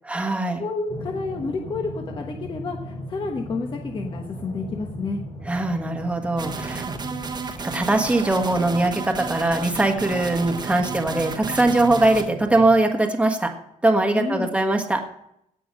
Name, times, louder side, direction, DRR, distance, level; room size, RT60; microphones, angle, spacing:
voice 1, 0.0-0.6 5.4-6.8 7.5-13.5 13.8-15.0, right 2 dB, 10° right, 4 dB, 1.5 m, -21 dB
voice 2, 0.6-5.2 14.1-14.5, left 3 dB, 35° left, 2 dB, 1.2 m, -30 dB
sound 1, 0.9-12.7, left 1 dB, 50° left, 6.5 m, -38 dB
sound 2, 6.4-12.2, right 4 dB, 30° right, 1.3 m, -32 dB
17.5 x 6.1 x 6.4 m, 0.77 s
cardioid pair, 145°, 14 cm